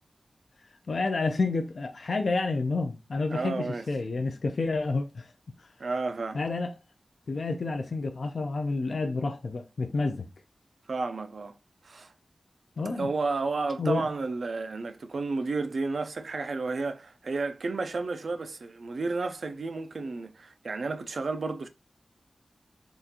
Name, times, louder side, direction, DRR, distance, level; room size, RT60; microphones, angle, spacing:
voice 1, 0.9-5.3 5.6-5.7 6.3-6.7 7.3-10.3 12.8-13.1 13.8-14.1, left 3 dB, 70° left, 0.3 m, -29 dB
voice 2, 3.3-3.8 5.8-6.4 10.9-11.6 11.8-12.1 12.9-21.7, right 3 dB, 75° right, 0.3 m, -32 dB
3.6 x 2.4 x 2.7 m
wide cardioid pair, 95°, 0 cm